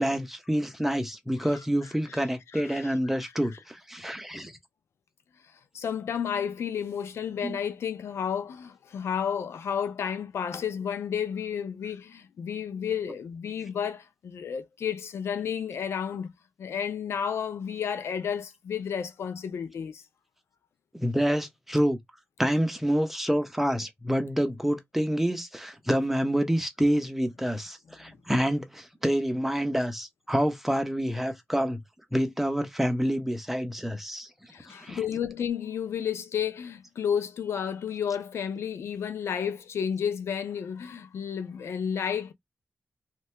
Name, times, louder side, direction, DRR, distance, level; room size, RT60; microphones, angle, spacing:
voice 1, 0.0-4.6 7.4-7.6 20.9-22.0 22.4-31.8 32.1-34.3 34.8-35.0, equal, 5° right, 0.8 m, -27 dB
voice 2, 2.5-2.9 3.2-3.3 5.7-16.3 16.6-20.0 28.0-28.1 34.5-42.3, left 8 dB, 85° left, 0.4 m, -32 dB
2.7 x 2.3 x 3.2 m
cardioid pair, 70°, 4 cm